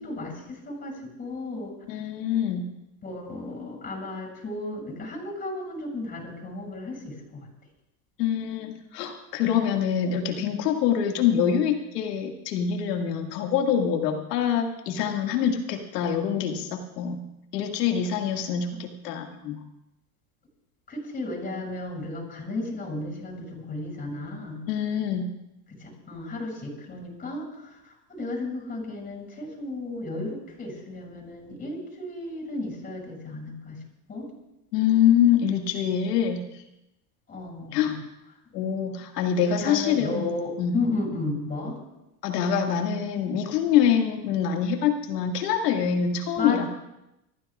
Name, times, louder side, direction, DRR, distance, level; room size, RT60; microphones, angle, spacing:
voice 1, 0.0-1.7 3.0-7.5 18.7-18.8 20.9-24.6 25.8-33.8 34.1-34.3 37.3-38.0 39.6-41.8 46.4-46.7, left 2 dB, 20° left, 0 dB, 6.7 m, -34 dB
voice 2, 1.9-2.6 8.2-17.2 17.5-19.6 24.7-25.3 34.7-36.4 37.7-37.9 38.5-40.3 40.6-40.8 42.2-46.7, left 8 dB, 90° left, 3 dB, 2.1 m, -25 dB
27.0 x 14.5 x 2.4 m, 0.89 s
supercardioid pair, 135°, 47 cm